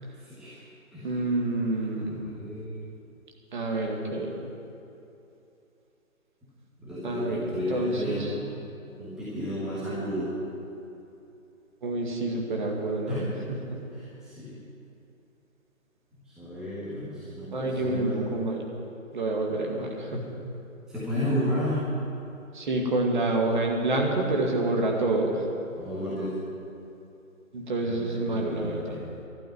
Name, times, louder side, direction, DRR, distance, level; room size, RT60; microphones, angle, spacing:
voice 1, 0.2-0.6 0.9-1.1 1.9-2.8 6.8-8.4 9.0-10.3 13.1-13.2 13.9-14.6 16.2-18.2 20.9-21.9 25.8-26.4 27.8-29.0, left 1 dB, ahead, -11 dB, 1.4 m, -32 dB
voice 2, 1.0-2.1 3.5-4.4 7.0-8.3 11.8-13.8 17.5-18.6 19.1-20.2 22.5-25.5 27.5-28.8, right 2 dB, 35° right, 0 dB, 2.0 m, -28 dB
12.0 x 8.6 x 9.9 m, 2.8 s
figure-of-eight pair, 155°, 41 cm